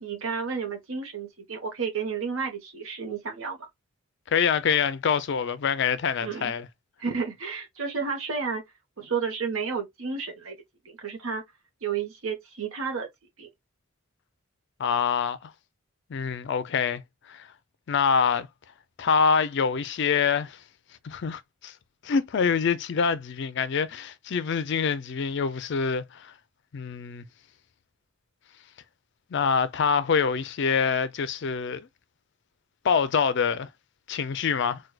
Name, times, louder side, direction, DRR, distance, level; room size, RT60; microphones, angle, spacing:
voice 1, 0.0-3.7 6.2-6.5 7.0-8.6 9.0-10.6 10.8-11.4 11.8-13.1 13.4-13.5, right 5 dB, 65° right, 0.8 m, -31 dB
voice 2, 4.3-6.7 14.8-15.5 16.1-17.0 17.3-17.5 17.9-18.5 19.0-20.6 21.0-21.7 22.0-26.3 26.7-27.2 29.3-31.9 32.8-33.7 34.1-34.8, left 6 dB, 50° left, 0.4 m, -25 dB
4.5 x 2.2 x 2.2 m
head